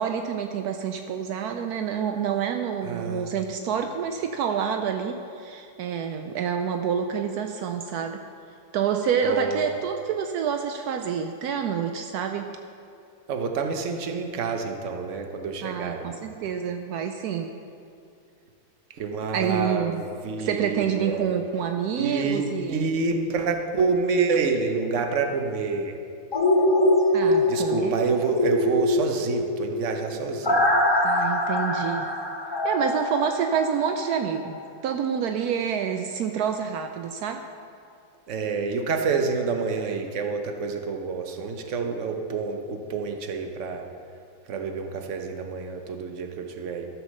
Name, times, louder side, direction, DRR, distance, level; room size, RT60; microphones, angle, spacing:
voice 1, 0.0-8.2 8.7-12.5 15.6-17.5 19.3-20.0 20.4-22.9 27.1-28.1 31.0-32.1 32.6-34.6 34.8-37.4, right 7 dB, 80° right, 5 dB, 0.8 m, -28 dB
voice 2, 2.8-3.3 9.2-9.7 13.3-16.3 18.9-21.3 22.0-26.0 27.5-30.6 38.3-43.8 44.5-46.9, right 4 dB, 50° right, 4 dB, 0.9 m, -28 dB
sound 1, 26.3-34.2 34.5-34.6, left 1 dB, 40° left, 0.3 m, -24 dB
13.0 x 6.2 x 6.5 m, 2.4 s
omnidirectional pair, 2.2 m